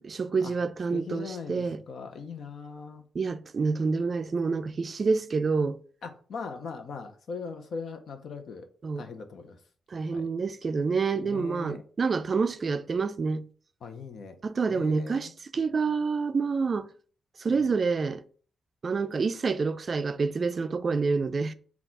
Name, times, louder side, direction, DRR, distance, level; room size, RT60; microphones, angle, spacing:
voice 1, 0.0-1.8 3.1-5.8 8.8-9.1 9.9-13.5 14.4-16.9 17.4-18.2 18.8-21.5, right 4 dB, 45° right, 0.3 m, -28 dB
voice 2, 0.9-3.1 6.0-8.7 9.0-9.6 10.1-10.3 11.2-11.8 13.8-14.4 14.7-15.3 17.5-17.7, left 5 dB, 70° left, 0.7 m, -40 dB
4.1 x 2.3 x 4.5 m
cardioid pair, 85°, 0 cm